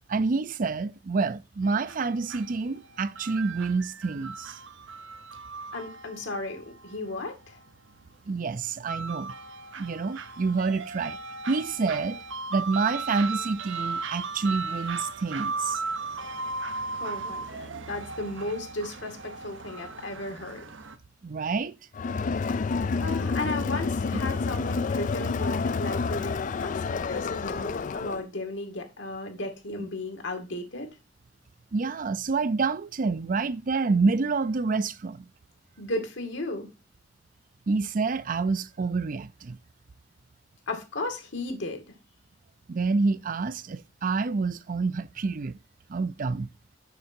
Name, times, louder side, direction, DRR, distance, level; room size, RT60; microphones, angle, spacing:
voice 1, 0.1-4.6 8.3-9.3 9.8-11.2 11.5-12.2 12.5-15.8 21.2-21.7 29.8-29.9 31.7-35.2 37.7-39.6 42.7-45.5 45.9-46.5, right 4 dB, 45° right, 0.5 m, -28 dB
sound 1, 1.6-21.0, right 4 dB, 85° right, 0.9 m, -37 dB
voice 2, 5.7-7.6 16.9-20.7 22.7-30.9 35.8-36.7 40.7-41.8, left 2 dB, 75° left, 2.1 m, -35 dB
Crowd, 21.9-28.2, left 4 dB, 45° left, 0.4 m, -29 dB
6.7 x 6.2 x 4.4 m
head